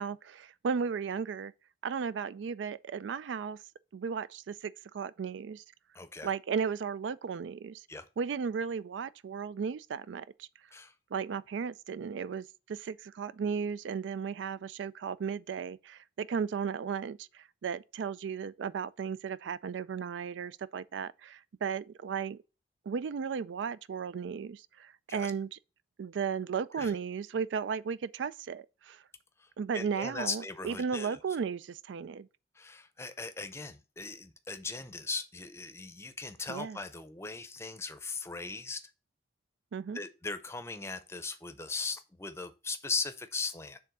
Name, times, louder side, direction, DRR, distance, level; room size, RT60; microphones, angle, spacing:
voice 1, 0.0-1.5 1.8-3.6 3.9-5.6 6.2-7.9 8.2-10.5 11.1-22.4 22.9-25.6 26.0-29.0 29.6-32.3 36.5-36.8 39.7-40.0, right 6 dB, 90° right, 0.4 m, -35 dB
voice 2, 5.9-6.3 7.9-8.1 10.7-10.9 25.1-25.3 26.7-27.0 29.4-29.5 29.7-31.2 32.6-38.8 39.9-43.8, left 4 dB, 15° left, 0.6 m, -38 dB
6.9 x 3.6 x 6.0 m
head